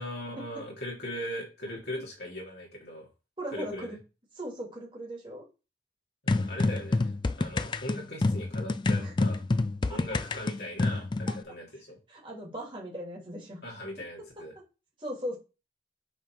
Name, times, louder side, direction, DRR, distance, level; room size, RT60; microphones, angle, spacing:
voice 1, 0.0-3.1 3.5-4.0 6.2-9.4 9.9-12.0 13.6-14.5, left 1 dB, 60° left, -2 dB, 3.2 m, -39 dB
voice 2, 3.4-4.0 4.3-5.4 6.5-6.7 9.0-9.1 9.9-10.0 11.3-11.4 12.1-13.6 14.2-14.4 15.0-15.4, equal, 25° right, -3 dB, 2.6 m, -39 dB
sound 1, 6.3-11.4, left 2 dB, 25° left, 0.3 m, -28 dB
7.3 x 4.2 x 4.7 m, 0.30 s
head